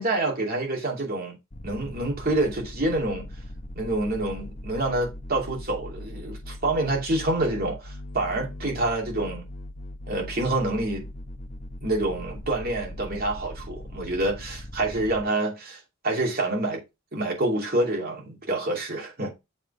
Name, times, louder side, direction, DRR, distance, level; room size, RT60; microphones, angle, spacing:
voice 1, 0.0-1.4 1.6-3.3 3.8-9.5 10.1-11.1 11.8-16.8 17.1-19.3, right 2 dB, 45° right, 2.7 m, -27 dB
sound 1, 1.5-15.2, left 1 dB, 40° left, 0.9 m, -40 dB
7.3 x 3.8 x 4.9 m
head